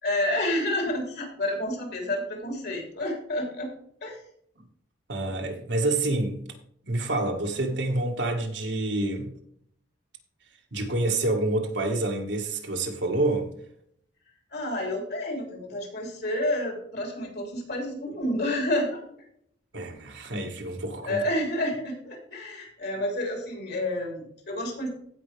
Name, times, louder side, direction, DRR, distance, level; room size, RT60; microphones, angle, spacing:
voice 1, 0.0-3.7 4.0-4.2 7.5-7.7 14.5-19.0 21.0-24.9, left 1 dB, 55° left, 3.6 m, -29 dB
voice 2, 5.1-6.4 6.8-9.3 10.7-13.5 19.7-21.2, right 2 dB, 65° right, 1.9 m, -27 dB
16.0 x 5.6 x 3.5 m
head